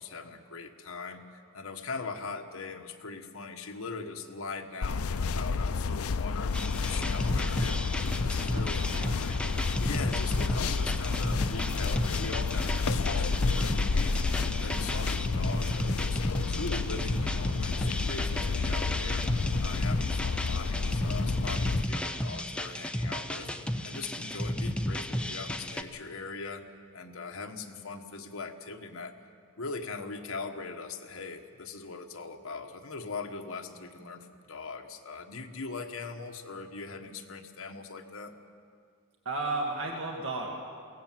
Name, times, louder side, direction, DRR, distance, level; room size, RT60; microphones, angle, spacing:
voice 1, 0.0-7.8 8.2-9.4 9.8-19.3 19.6-23.5 23.8-26.6 26.9-29.1 29.6-38.3, left 4 dB, 70° left, 5 dB, 1.4 m, -41 dB
sound 1, 4.8-21.8, left 4 dB, 90° left, 0.5 m, -30 dB
sound 2, 6.5-25.8, left 1 dB, 5° left, 0.7 m, -33 dB
voice 2, 8.5-9.2 10.5-10.8 39.3-40.5, right 2 dB, 65° right, 0 dB, 2.1 m, -35 dB
22.5 x 17.5 x 7.6 m, 2.2 s
head